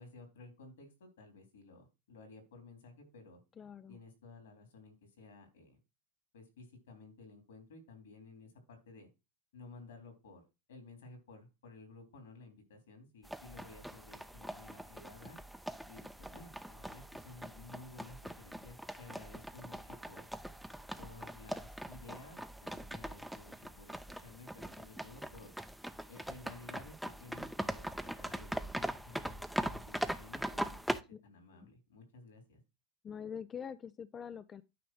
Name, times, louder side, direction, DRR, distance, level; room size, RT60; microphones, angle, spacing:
voice 1, 0.0-3.4 3.9-5.8 6.3-9.1 9.5-10.4 10.7-15.4 15.9-20.3 21.0-25.5 26.1-32.6, left 3 dB, 80° left, 3.6 m, -55 dB
voice 2, 3.6-4.0 31.1-31.2 33.0-34.6, left 7 dB, 30° left, 0.5 m, -44 dB
sound 1, 13.2-31.0, right 1 dB, ahead, 0.8 m, -42 dB
9.4 x 3.4 x 6.3 m
hypercardioid pair, 85°, 0 cm